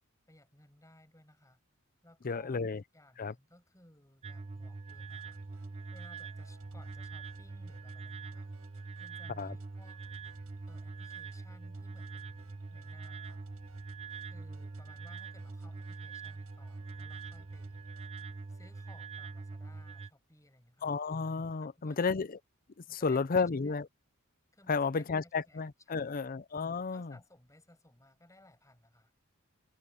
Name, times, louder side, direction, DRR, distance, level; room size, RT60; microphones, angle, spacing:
voice 1, 0.3-1.6 2.0-2.7 2.9-5.4 5.9-8.5 9.0-10.0 10.7-13.4 14.2-17.8 18.5-20.9 21.6-22.2 22.9-23.8 24.5-26.3 26.9-29.1, left 1 dB, 15° left, 7.5 m, -61 dB
voice 2, 2.2-2.8 3.2-3.3 9.4-9.6 20.8-22.4 22.9-23.9 24.7-27.1, left 4 dB, 40° left, 0.6 m, -32 dB
sound 1, 4.2-20.1, right 3 dB, 30° right, 0.6 m, -44 dB
sound 2, 4.9-18.6, right 2 dB, 90° right, 7.3 m, -63 dB
head